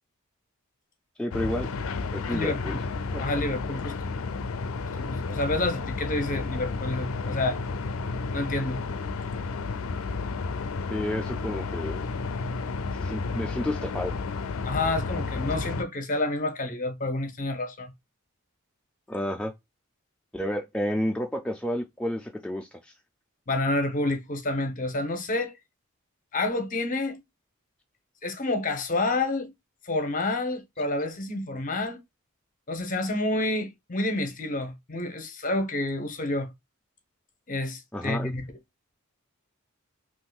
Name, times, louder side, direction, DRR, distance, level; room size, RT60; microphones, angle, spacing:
voice 1, 1.2-1.7 2.1-2.8 3.1-3.2 10.9-12.0 12.9-14.2 19.1-19.5 20.3-22.9 37.9-38.3, left 1 dB, 5° left, 0.3 m, -30 dB
sound 1, 1.3-15.8, left 4 dB, 75° left, 0.4 m, -32 dB
voice 2, 2.3-2.8 3.2-4.1 5.0-7.6 8.3-8.8 14.6-17.9 23.5-25.5 26.3-27.2 28.2-29.5 29.8-32.0 32.7-36.5 37.5-38.4, left 2 dB, 40° left, 0.8 m, -29 dB
3.7 x 2.5 x 2.3 m
head